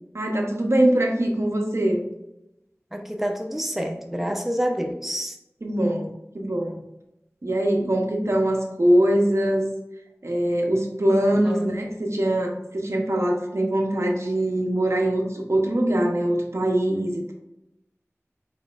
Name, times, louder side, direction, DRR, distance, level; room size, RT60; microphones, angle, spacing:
voice 1, 0.1-2.0 5.6-6.8 7.4-9.7 10.2-17.3, right 1 dB, 65° right, 1 dB, 0.9 m, -22 dB
voice 2, 2.9-5.4 11.4-11.7, equal, 5° right, 3 dB, 0.5 m, -28 dB
4.7 x 4.1 x 2.5 m, 0.88 s
wide cardioid pair, 45°, 5 cm